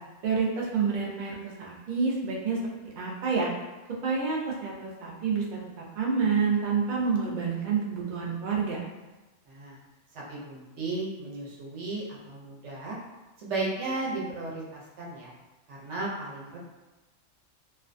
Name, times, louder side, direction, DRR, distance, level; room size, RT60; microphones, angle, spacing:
voice 1, 0.2-2.6 3.0-3.5 4.0-8.8, right 5 dB, 55° right, -2 dB, 0.5 m, -28 dB
voice 2, 9.5-9.8 10.1-13.0 13.4-15.3 15.7-16.6, right 2 dB, 70° right, -5 dB, 0.9 m, -35 dB
2.4 x 2.2 x 2.4 m, 1.1 s
omnidirectional pair, 1.3 m